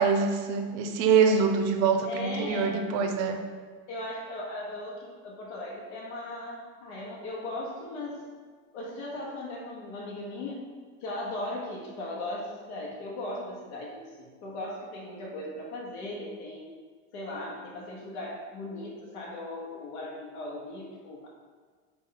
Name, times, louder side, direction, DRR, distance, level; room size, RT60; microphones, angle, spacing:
voice 1, 0.0-3.5, right 5 dB, 50° right, 5 dB, 0.6 m, -24 dB
voice 2, 2.0-2.8 3.9-8.3 8.7-10.7 11.0-16.7 17.1-21.3, left 1 dB, 80° left, -2 dB, 1.0 m, -38 dB
5.1 x 2.3 x 3.8 m, 1.6 s
supercardioid pair, 135°, 34 cm